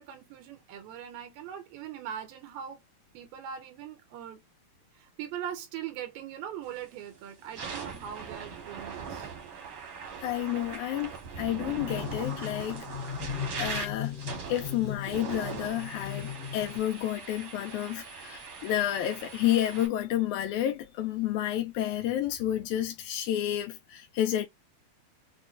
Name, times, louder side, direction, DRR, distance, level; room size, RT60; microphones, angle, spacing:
voice 1, 0.0-2.8 3.1-4.4 4.9-9.3, right 9 dB, 85° right, 2.6 m, -41 dB
sound 1, 6.7-6.9 7.4-19.9, right 5 dB, 60° right, 1.3 m, -41 dB
voice 2, 10.2-12.9 13.6-14.2 14.5-24.5, left 12 dB, 85° left, 1.7 m, -30 dB
sound 2, 11.7-16.8, left 9 dB, 55° left, 2.0 m, -38 dB
6.3 x 2.3 x 2.5 m
omnidirectional pair, 4.1 m